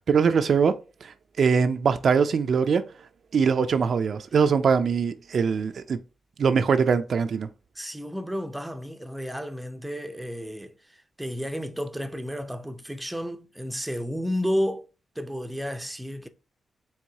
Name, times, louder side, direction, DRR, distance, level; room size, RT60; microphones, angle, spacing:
voice 1, 0.1-2.8 3.3-6.0 6.4-7.5, right 6 dB, 60° right, 0.4 m, -22 dB
voice 2, 7.8-14.9 15.2-16.3, equal, 5° right, 0.5 m, -32 dB
4.6 x 3.5 x 2.7 m
cardioid pair, 90°, 0 cm